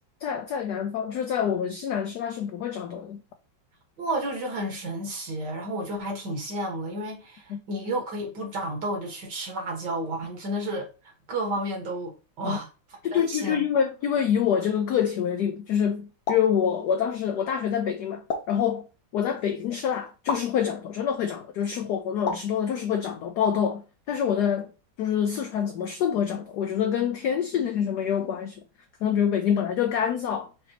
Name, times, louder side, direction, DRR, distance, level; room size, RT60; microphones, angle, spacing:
voice 1, 0.2-3.2 7.5-7.6 12.4-12.6 13.0-18.9 19.1-24.7 25.0-28.6 29.0-30.5, left 8 dB, 80° left, 0.9 m, -26 dB
voice 2, 4.0-10.9 11.3-12.7 13.1-13.7, right 1 dB, 60° right, 1.9 m, -31 dB
sound 1, 16.3-16.6 18.3-18.6 20.3-20.5 22.3-22.6, left 4 dB, 55° left, 1.2 m, -30 dB
6.0 x 2.8 x 2.8 m
omnidirectional pair, 2.2 m